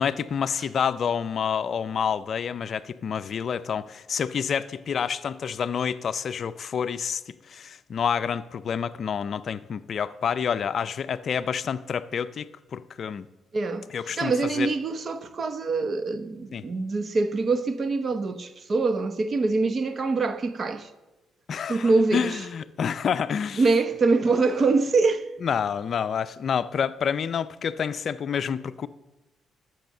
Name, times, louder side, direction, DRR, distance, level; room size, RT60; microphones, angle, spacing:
voice 1, 0.0-13.3 13.9-14.7 16.5-16.6 21.5-23.6 24.4-24.5 25.4-28.9, left 7 dB, 55° left, 0.4 m, -28 dB
voice 2, 13.5-13.9 14.2-20.9 21.7-22.4 23.6-25.2, right 3 dB, 45° right, 0.9 m, -24 dB
12.0 x 7.8 x 6.6 m
cardioid pair, 90°, 0 cm